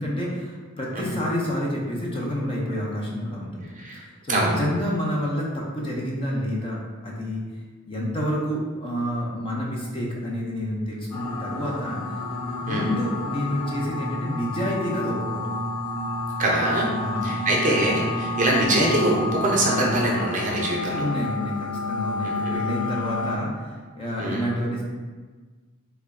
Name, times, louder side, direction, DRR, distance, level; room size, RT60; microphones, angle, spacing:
voice 1, 0.0-7.4 7.9-12.0 12.6-15.4 17.0-17.6 20.9-24.8, equal, 25° left, -3 dB, 0.5 m, -29 dB
voice 2, 4.3-4.6 12.7-13.0 16.4-16.9 17.2-21.1 22.2-22.6 24.2-24.4, right 1 dB, 35° right, -2 dB, 0.6 m, -23 dB
sound 1, 11.1-23.4, left 2 dB, 85° left, 0.4 m, -30 dB
2.9 x 2.2 x 3.5 m, 1.4 s
head